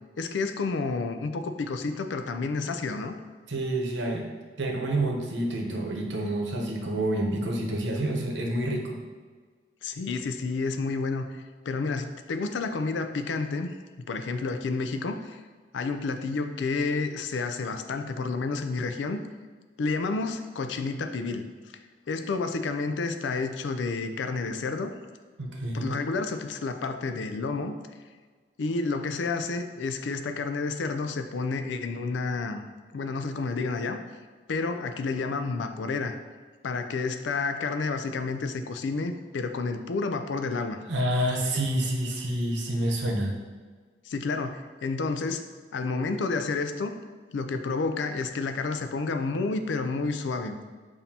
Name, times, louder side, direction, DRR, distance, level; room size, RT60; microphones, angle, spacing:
voice 1, 0.2-3.2 9.8-15.4 15.7-19.2 19.8-21.4 22.1-24.9 25.7-27.7 28.6-32.6 32.9-34.0 34.5-36.2 36.6-40.8 44.1-45.4 45.7-47.0 47.3-50.6, left 3 dB, 90° left, 8 dB, 0.4 m, -30 dB
voice 2, 3.5-4.3 4.6-9.0 25.4-25.9 40.9-43.3, right 1 dB, 85° right, 0 dB, 0.8 m, -28 dB
7.0 x 2.7 x 2.8 m, 1.5 s
head